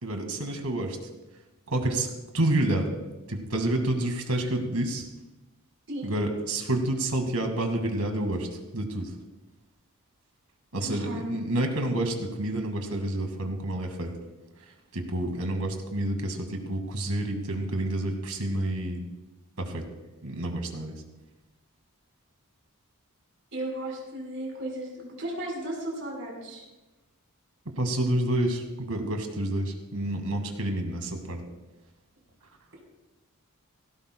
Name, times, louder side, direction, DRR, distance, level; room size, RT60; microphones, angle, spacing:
voice 1, 0.0-1.0 1.7-2.1 2.3-2.8 3.3-5.1 6.0-8.5 8.7-9.1 10.7-14.1 14.9-19.0 19.6-19.8 20.2-20.9 27.8-31.4, right 1 dB, 80° right, 4 dB, 2.1 m, -28 dB
voice 2, 10.8-11.2 23.5-26.6, right 1 dB, 55° right, -1 dB, 4.6 m, -35 dB
17.5 x 16.5 x 2.3 m, 1.1 s
head